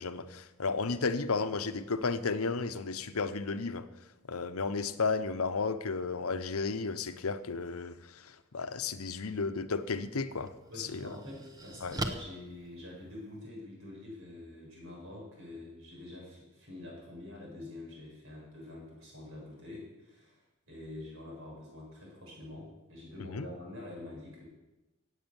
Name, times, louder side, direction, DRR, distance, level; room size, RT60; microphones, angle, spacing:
voice 1, 0.0-3.9 4.3-10.5 10.8-11.1 11.8-12.0 23.3-23.5, left 4 dB, 85° left, 11 dB, 0.9 m, -33 dB
sound 1, 9.7-9.9 10.5-13.5, right 2 dB, 15° right, 0.9 m, -41 dB
voice 2, 10.7-24.4, left 1 dB, 65° right, -2 dB, 7.0 m, -46 dB
17.0 x 8.4 x 7.1 m, 1.1 s
head